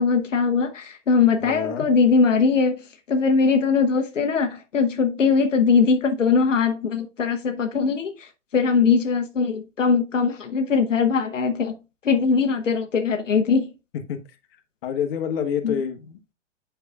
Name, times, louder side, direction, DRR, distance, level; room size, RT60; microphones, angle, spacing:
voice 1, 0.0-2.8 3.1-11.8 12.0-13.7 15.6-15.7, left 5 dB, 80° left, 1.0 m, -21 dB
voice 2, 1.4-1.9 13.9-14.2 14.8-16.3, left 8 dB, 50° left, 1.3 m, -28 dB
8.4 x 5.7 x 2.4 m
figure-of-eight pair, 110°, 37 cm